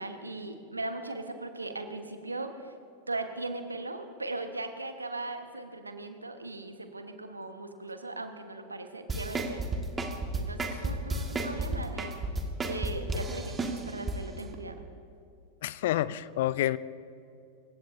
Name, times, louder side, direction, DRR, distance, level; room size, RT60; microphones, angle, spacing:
voice 1, 0.0-2.7 3.1-9.7 10.4-12.1 12.6-14.8, right 2 dB, 80° right, 7 dB, 1.3 m, -38 dB
sound 1, 9.1-14.2 14.5-14.6, right 2 dB, 15° right, 1.7 m, -32 dB
voice 2, 15.6-16.8, left 14 dB, 55° left, 18 dB, 0.4 m, -28 dB
27.0 x 16.0 x 2.7 m, 2.6 s
figure-of-eight pair, 90°, 0 cm